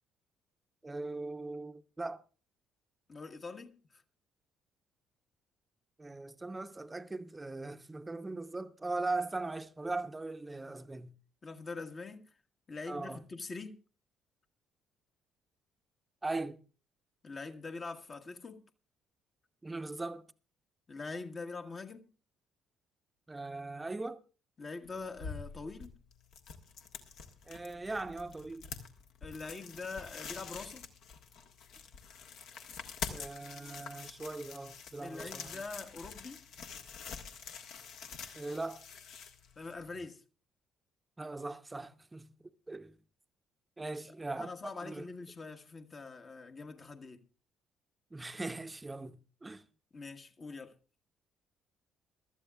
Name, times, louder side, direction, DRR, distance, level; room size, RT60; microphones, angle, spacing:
voice 1, 0.8-2.2 6.0-11.1 12.9-13.2 16.2-16.6 19.6-20.3 23.3-24.2 27.5-28.6 33.1-35.6 38.3-38.8 41.2-42.3 42.7-43.0 43.8-44.5 44.8-45.0 48.1-49.6, right 2 dB, 20° right, 0.8 m, -39 dB
voice 2, 3.1-4.0 11.4-12.2 12.7-13.8 17.2-18.6 20.9-22.0 24.6-26.0 29.2-30.9 35.0-36.4 39.6-40.2 43.8-44.0 44.4-47.2 49.9-50.7, left 3 dB, 35° left, 1.3 m, -44 dB
sound 1, 24.8-40.0, left 6 dB, 60° left, 1.5 m, -46 dB
23.0 x 13.0 x 2.4 m
figure-of-eight pair, 45°, 0 cm